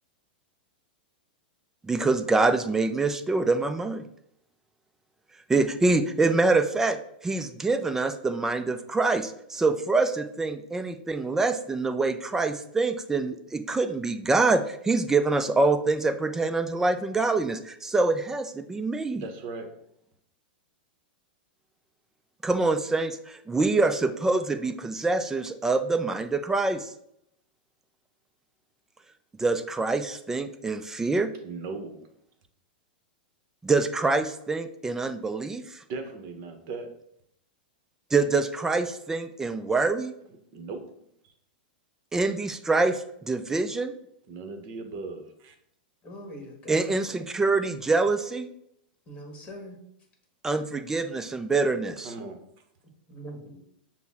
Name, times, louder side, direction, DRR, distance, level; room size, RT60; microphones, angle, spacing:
voice 1, 1.8-4.0 5.5-19.2 22.4-26.9 29.4-31.3 33.6-35.8 38.1-40.1 42.1-43.9 46.7-48.5 50.4-52.1, right 3 dB, 10° right, 8 dB, 0.3 m, -25 dB
voice 2, 19.1-19.7 31.4-32.1 35.9-36.9 40.5-40.8 41.2-41.3 44.3-45.6 52.0-52.4, right 3 dB, 45° right, 6 dB, 0.8 m, -38 dB
voice 3, 46.0-47.3 49.1-49.8 53.1-53.6, equal, 20° left, 2 dB, 1.2 m, -42 dB
6.0 x 2.0 x 3.5 m, 0.73 s
hypercardioid pair, 135°, 5 cm